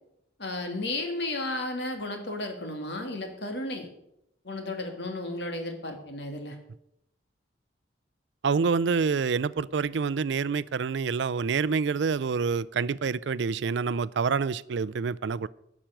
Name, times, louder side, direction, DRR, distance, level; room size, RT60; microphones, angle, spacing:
voice 1, 0.4-3.9 4.4-6.6, left 2 dB, 65° left, 2.4 m, -33 dB
voice 2, 8.4-15.5, right 5 dB, 70° right, 0.4 m, -27 dB
11.5 x 6.1 x 8.9 m
head